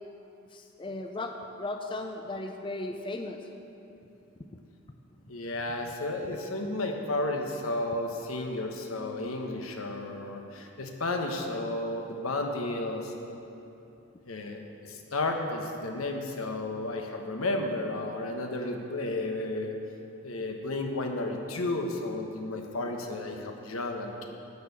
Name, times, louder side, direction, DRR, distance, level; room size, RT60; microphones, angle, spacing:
voice 1, 0.5-3.4, left 2 dB, 25° left, 4 dB, 0.4 m, -36 dB
voice 2, 5.3-13.1 14.3-19.7 20.2-24.3, left 2 dB, 85° left, 3 dB, 1.1 m, -32 dB
12.0 x 4.6 x 8.2 m, 2.9 s
head